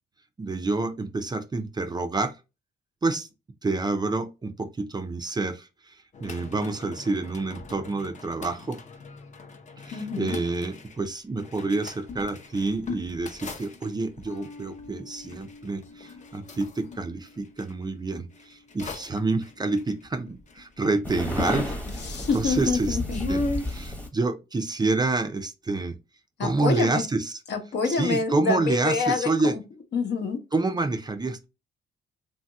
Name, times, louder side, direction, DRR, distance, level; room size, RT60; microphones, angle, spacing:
voice 1, 0.4-2.3 3.0-3.3 3.6-8.8 9.8-21.8 22.3-23.0 23.3-23.4 23.7-26.0 26.4-27.4 28.0-29.5 30.5-31.5, right 3 dB, 20° right, 0.5 m, -28 dB
sound 1, 6.1-17.7 18.3-21.2 21.4-23.7, left 2 dB, 35° left, 0.7 m, -39 dB
voice 2, 9.9-10.4 22.0-23.2 26.4-27.1 27.5-29.6 29.9-30.4, left 4 dB, 60° left, 1.0 m, -27 dB
sound 2, 14.3-21.0, left 3 dB, 85° left, 1.4 m, -51 dB
sound 3, 21.0-24.1, left 1 dB, 10° left, 0.9 m, -31 dB
3.0 x 2.8 x 2.2 m
cardioid pair, 90°, 20 cm